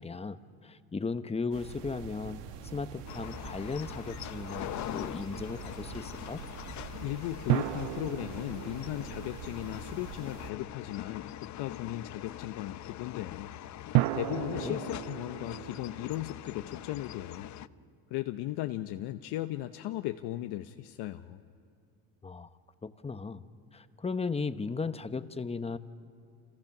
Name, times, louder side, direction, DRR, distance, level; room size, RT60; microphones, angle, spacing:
voice 1, 0.0-2.4 2.7-6.4 14.6-14.8 22.2-22.5 22.8-23.4 23.7-25.8, left 4 dB, 15° left, 11 dB, 0.9 m, -36 dB
sound 1, 1.5-10.5, right 8 dB, 75° right, 1.9 m, -45 dB
sound 2, 3.1-17.7, left 13 dB, 40° left, 0.6 m, -43 dB
voice 2, 7.0-13.5 14.1-17.5 18.1-21.4, left 15 dB, 65° left, 8 dB, 0.9 m, -37 dB
sound 3, 7.5-10.3 13.9-17.3, right 18 dB, 60° right, 0.6 m, -34 dB
30.0 x 26.5 x 6.0 m, 2.2 s
supercardioid pair, 105°, 43 cm